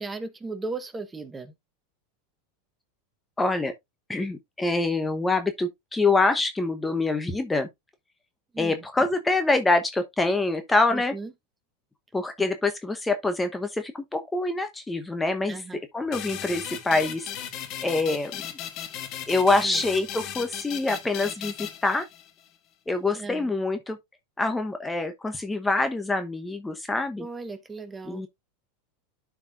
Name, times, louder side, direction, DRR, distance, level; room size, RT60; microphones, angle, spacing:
voice 1, 0.0-1.5 8.5-8.8 10.9-11.3 15.5-15.8 19.6-19.8 23.1-23.5 27.2-28.2, right 3 dB, 15° right, 1.2 m, -36 dB
voice 2, 3.4-3.7 4.1-7.7 8.6-11.1 12.1-15.6 15.9-17.3 17.8-18.3 19.3-22.1 22.9-24.0 24.4-27.3 28.0-28.3, left 3 dB, 10° left, 1.0 m, -25 dB
sound 1, 16.1-22.5, left 10 dB, 45° left, 1.7 m, -37 dB
12.0 x 4.7 x 2.5 m
hypercardioid pair, 115°, 0 cm